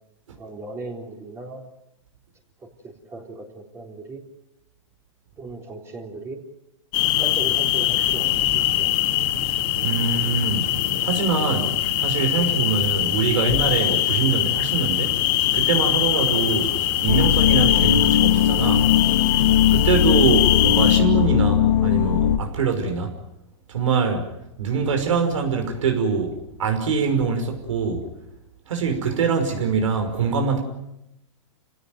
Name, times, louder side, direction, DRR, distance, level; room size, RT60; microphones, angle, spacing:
voice 1, 0.4-1.6 2.8-4.2 5.4-6.4 7.2-8.3 8.8-8.9, right 2 dB, 15° right, 3.8 m, -37 dB
sound 1, 6.9-21.0, left 14 dB, 40° left, 3.1 m, -22 dB
voice 2, 9.8-10.7 11.0-15.3 15.5-16.7 17.0-18.9 19.7-23.1 23.7-24.3 24.6-28.0 28.7-30.6, right 5 dB, 80° right, 5.7 m, -23 dB
sound 2, 17.1-22.4, left 9 dB, 70° left, 1.9 m, -19 dB
28.5 x 17.5 x 9.3 m
hypercardioid pair, 145°, 16 cm